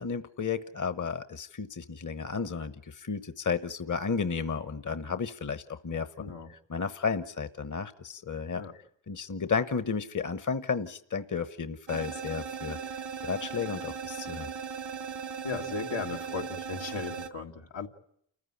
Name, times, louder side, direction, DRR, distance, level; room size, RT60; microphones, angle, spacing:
voice 1, 0.0-8.6 9.1-12.8 13.2-14.5, left 5 dB, 45° left, 12 dB, 1.1 m, -33 dB
voice 2, 6.2-6.5 8.5-8.7 15.4-17.9, left 4 dB, 90° left, 1 dB, 2.2 m, -36 dB
sound 1, 11.9-17.3, right 6 dB, 85° right, 2.1 m, -38 dB
29.0 x 15.0 x 10.0 m, 0.70 s
wide cardioid pair, 70°, 44 cm